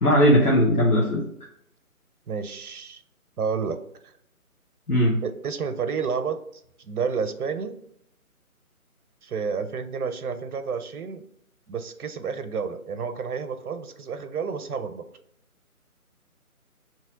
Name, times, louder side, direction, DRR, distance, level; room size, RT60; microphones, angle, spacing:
voice 1, 0.0-1.2 4.9-5.2, equal, 85° left, -5 dB, 1.1 m, -18 dB
voice 2, 2.3-3.0 3.4-3.8 4.0-4.1 5.2-6.4 6.8-7.7 9.2-11.2 11.7-15.1, right 5 dB, 80° right, 9 dB, 0.6 m, -30 dB
3.1 x 2.8 x 3.7 m, 0.71 s
figure-of-eight pair, 155°, 44 cm